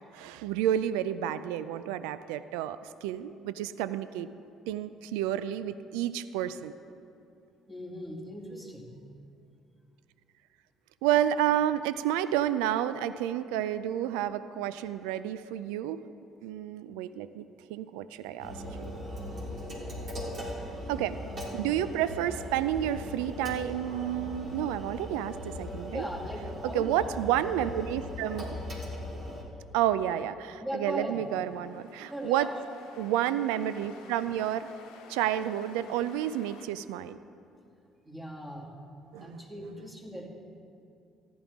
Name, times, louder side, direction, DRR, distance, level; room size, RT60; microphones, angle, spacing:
voice 1, 0.1-4.3 4.7-6.7 11.0-16.0 16.4-18.9 20.9-21.2 21.5-26.0 26.6-28.6 29.7-32.5 33.0-34.7 35.1-37.2 39.1-39.4, right 11 dB, 80° right, 14 dB, 0.3 m, -30 dB
voice 2, 7.7-8.9 19.7-19.8 25.9-27.0 30.6-31.2 32.1-32.6 38.0-38.7 39.2-40.3, equal, 15° right, -3 dB, 2.5 m, -38 dB
sound 1, 18.4-29.4, left 1 dB, 50° right, 2.8 m, -39 dB
sound 2, 31.0-36.7, left 5 dB, 80° left, 1.0 m, -53 dB
14.5 x 10.5 x 3.6 m, 2.6 s
hypercardioid pair, 60°, 0 cm